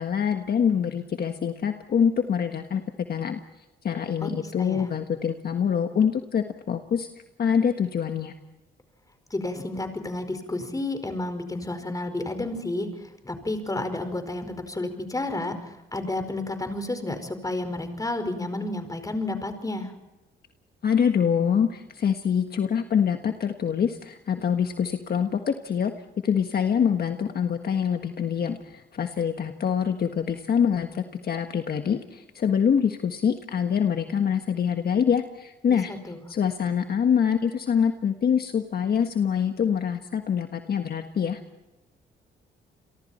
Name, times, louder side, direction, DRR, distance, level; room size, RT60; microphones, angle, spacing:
voice 1, 0.0-2.8 3.1-3.4 3.8-7.1 7.4-8.3 20.8-25.9 26.2-35.9 36.3-41.4, left 7 dB, 50° left, 6 dB, 1.5 m, -25 dB
voice 2, 4.2-4.9 9.3-12.9 13.2-19.9 35.7-36.2, left 2 dB, 15° left, 8 dB, 5.0 m, -31 dB
30.0 x 23.0 x 4.4 m, 1.0 s
cardioid pair, 90°, 20 cm